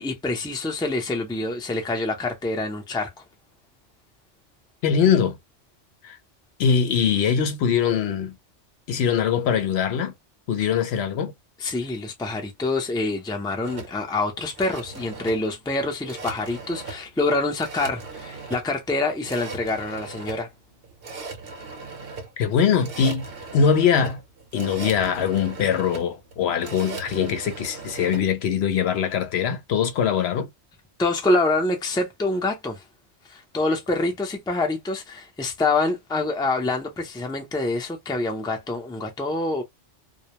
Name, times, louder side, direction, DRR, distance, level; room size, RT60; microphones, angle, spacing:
voice 1, 0.0-3.1 10.6-10.7 11.6-20.5 31.0-32.8 33.3-39.6, left 2 dB, 5° left, 0.4 m, -26 dB
voice 2, 4.8-5.4 6.0-6.2 6.6-8.3 8.9-10.1 10.5-11.3 22.4-23.3 23.5-24.2 24.5-30.5, left 7 dB, 70° left, 0.8 m, -22 dB
sound 1, 13.6-28.2, right 4 dB, 60° right, 0.8 m, -38 dB
2.2 x 2.1 x 2.8 m
omnidirectional pair, 1.2 m